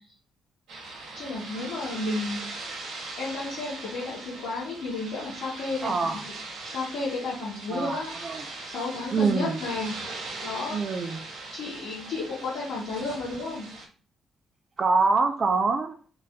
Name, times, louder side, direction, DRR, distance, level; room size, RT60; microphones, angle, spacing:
sound 1, 0.7-13.9, right 3 dB, 65° right, 1.4 m, -40 dB
voice 1, 1.1-2.5 3.2-6.2 6.6-8.1 8.7-10.0 10.4-10.8 11.5-13.7, left 3 dB, 60° left, -9 dB, 2.2 m, -32 dB
voice 2, 5.8-6.2 7.7-8.4 9.1-9.6 10.7-11.2 14.8-16.0, right 4 dB, 40° right, 6 dB, 0.5 m, -25 dB
4.0 x 3.2 x 3.8 m, 0.39 s
figure-of-eight pair, 45°, 0 cm